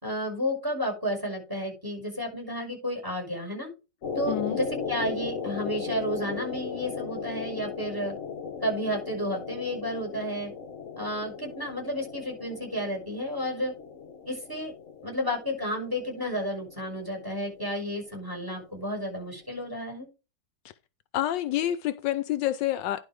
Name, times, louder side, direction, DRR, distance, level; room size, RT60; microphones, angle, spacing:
voice 1, 0.0-3.7 4.1-8.1 8.6-10.5 11.0-13.7 14.3-14.7 15.0-20.1, equal, 10° right, 5.9 m, -32 dB
sound 1, 4.0-19.3 19.6-19.7, left 5 dB, 45° left, 1.4 m, -37 dB
voice 2, 4.3-4.6 21.1-23.0, left 13 dB, 80° left, 1.2 m, -28 dB
11.0 x 4.7 x 4.8 m
omnidirectional pair, 2.0 m